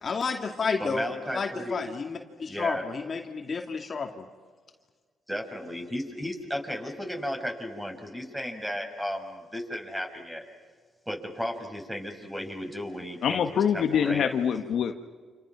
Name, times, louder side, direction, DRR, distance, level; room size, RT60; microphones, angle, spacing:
voice 1, 0.0-1.0 1.3-4.2, left 5 dB, 40° left, 3 dB, 2.5 m, -31 dB
voice 2, 0.8-1.8 2.5-2.9 5.3-10.5 11.1-14.3, equal, 5° right, 3 dB, 5.8 m, -34 dB
voice 3, 13.2-14.9, left 8 dB, 65° left, 6 dB, 1.4 m, -25 dB
29.5 x 28.5 x 6.0 m, 1.5 s
cardioid pair, 90°, 0 cm